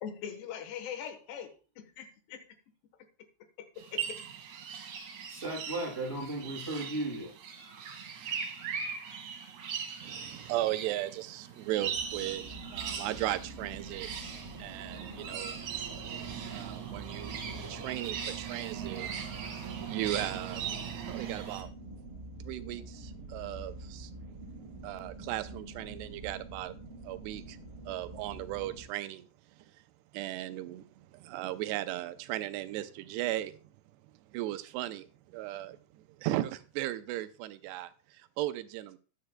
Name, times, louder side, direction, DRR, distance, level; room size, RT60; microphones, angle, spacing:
voice 1, 0.0-2.1 3.6-4.2, left 8 dB, 75° left, 8 dB, 3.3 m, -41 dB
sound 1, 3.8-21.6, right 7 dB, 60° right, 2.3 m, -40 dB
voice 2, 5.3-7.3, right 2 dB, 15° right, -3 dB, 5.6 m, -35 dB
voice 3, 10.0-15.6 15.8-15.9 16.2-20.6 21.1-21.7 22.4-24.1 24.8-26.8 27.0-29.3 29.6-29.7 30.1-33.6 34.3-39.0, right 15 dB, 85° right, 11 dB, 2.6 m, -37 dB
sound 2, 11.8-28.9, right 2 dB, 40° right, 2.5 m, -47 dB
13.5 x 10.5 x 2.2 m, 0.37 s
omnidirectional pair, 4.8 m